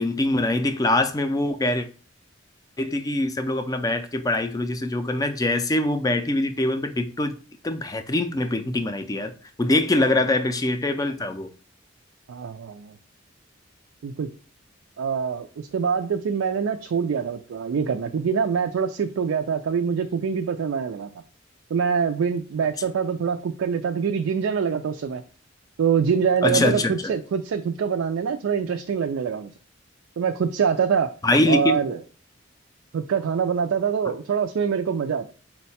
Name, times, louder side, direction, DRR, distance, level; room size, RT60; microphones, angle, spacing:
voice 1, 0.0-1.9 2.8-7.3 7.6-9.3 9.6-11.5 26.4-27.1 31.2-31.8, left 2 dB, 20° left, 0.4 m, -23 dB
voice 2, 12.3-13.0 14.0-14.3 15.0-21.1 21.7-25.2 25.8-29.5 30.2-31.1 31.5-32.0 32.9-35.3, right 6 dB, 85° right, 0.4 m, -24 dB
4.5 x 2.2 x 4.1 m
head